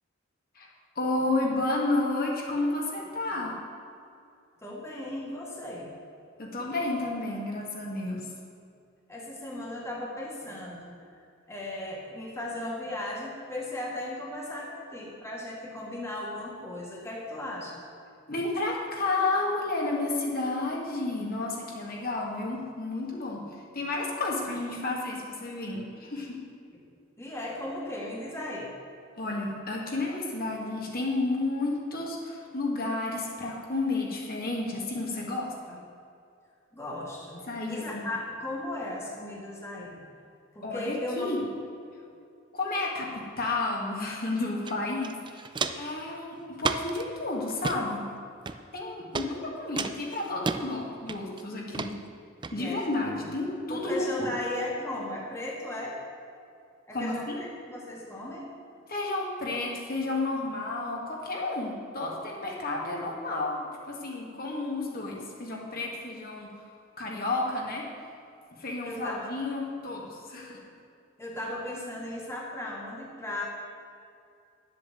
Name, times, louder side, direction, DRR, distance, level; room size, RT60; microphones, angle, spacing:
voice 1, 1.0-3.5 6.4-8.3 18.3-23.4 23.7-26.4 29.1-35.8 37.5-38.0 40.6-41.5 42.5-45.5 45.8-48.1 48.7-52.0 52.5-54.3 56.9-57.4 58.9-63.6 63.9-66.5 67.0-67.9 68.5-70.6, left 2 dB, 45° left, -2 dB, 1.9 m, -31 dB
voice 2, 4.6-5.9 9.1-11.2 11.5-17.7 27.2-28.7 36.7-40.0 40.5-41.3 52.5-52.9 53.7-56.0 56.9-58.5 68.8-69.3 70.4-70.5 71.2-73.4, left 1 dB, 15° left, -4 dB, 1.7 m, -36 dB
Walk footsteps, 44.7-44.8 45.0-45.9 46.6-47.0 47.5-47.8 48.5-48.8 49.2-49.3 49.8-50.6 51.1-51.4 51.7-51.9 52.4-52.5, right 4 dB, 25° right, 0.4 m, -31 dB
10.5 x 7.7 x 7.7 m, 2.4 s
head